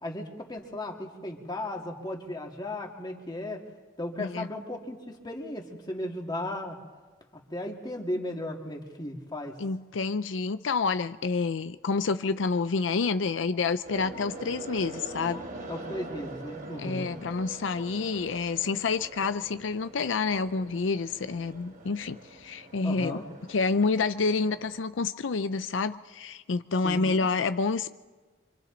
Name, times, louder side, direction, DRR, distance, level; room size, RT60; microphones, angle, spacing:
voice 1, 0.0-3.6 4.0-5.0 5.2-6.8 7.5-9.6 15.7-17.1 22.8-23.2 26.8-27.1, left 1 dB, 25° left, 1 dB, 2.3 m, -35 dB
voice 2, 4.2-4.5 9.6-15.4 16.8-23.2 23.5-27.9, left 4 dB, 85° left, 12 dB, 0.5 m, -28 dB
sound 1, 13.8-24.8, right 2 dB, 50° right, 3.4 m, -44 dB
26.0 x 25.5 x 4.0 m, 1.3 s
head